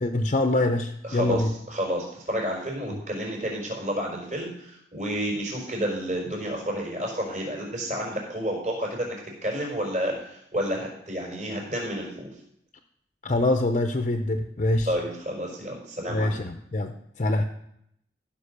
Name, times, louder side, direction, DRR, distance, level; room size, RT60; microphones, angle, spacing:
voice 1, 0.0-1.5 13.2-14.9 16.1-16.9 17.2-17.4, left 2 dB, 40° left, 6 dB, 0.7 m, -24 dB
voice 2, 1.0-9.2 9.4-12.3 14.8-16.4, equal, 40° right, -1 dB, 5.0 m, -30 dB
15.0 x 5.4 x 6.7 m, 0.73 s
head